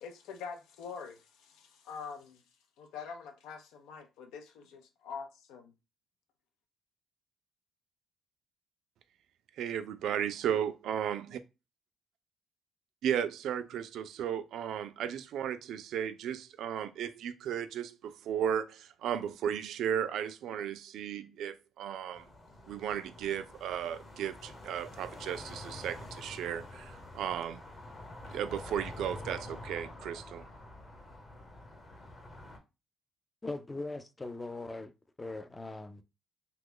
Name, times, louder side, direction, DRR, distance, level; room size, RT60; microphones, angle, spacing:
voice 1, 0.0-2.4 2.8-5.7, left 6 dB, 90° left, 0.5 m, -45 dB
voice 2, 9.6-11.4 13.0-22.3 22.7-27.6 28.3-30.4, right 9 dB, 75° right, 0.3 m, -35 dB
sound 1, 22.1-32.6, left 1 dB, 35° left, 1.0 m, -47 dB
voice 3, 33.4-34.9 35.2-36.0, left 2 dB, 15° left, 0.4 m, -40 dB
2.9 x 2.2 x 3.7 m
cardioid pair, 105°, 0 cm